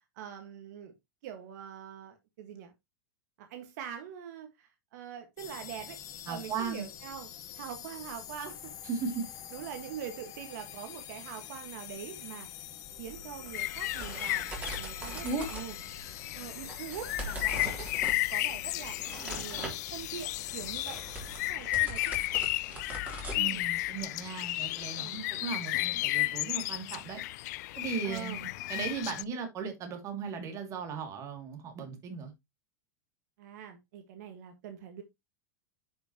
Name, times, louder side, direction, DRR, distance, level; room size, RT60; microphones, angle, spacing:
voice 1, 0.2-0.9 1.2-2.7 3.4-6.0 6.3-7.3 7.5-8.7 9.5-12.5 13.0-14.5 14.8-15.8 16.4-17.9 18.3-21.0 21.5-22.2 23.3-23.7 25.0-25.2 28.0-28.5 33.4-35.0, right 9 dB, 65° right, 1.6 m, -43 dB
sound 1, 5.4-21.5, left 10 dB, 35° left, 1.7 m, -45 dB
voice 2, 6.3-6.8 8.8-9.2 15.2-15.5 23.3-27.2 27.8-32.3, right 5 dB, 30° right, 2.5 m, -37 dB
sound 2, 12.8-24.0, right 1 dB, 15° right, 3.3 m, -43 dB
sound 3, 13.5-29.2, left 19 dB, 65° left, 0.4 m, -34 dB
9.9 x 5.8 x 3.0 m
supercardioid pair, 140°, 10 cm